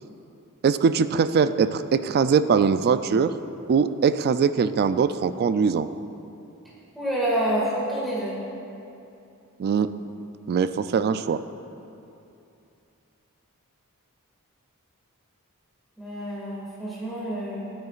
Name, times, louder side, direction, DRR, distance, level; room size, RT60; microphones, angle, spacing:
voice 1, 0.6-3.3 3.7-5.9 9.6-9.9 10.5-11.4, right 6 dB, 45° right, 12 dB, 0.3 m, -21 dB
voice 2, 6.9-8.4 16.0-17.7, right 1 dB, ahead, -8 dB, 2.0 m, -28 dB
14.5 x 9.6 x 2.4 m, 2.7 s
head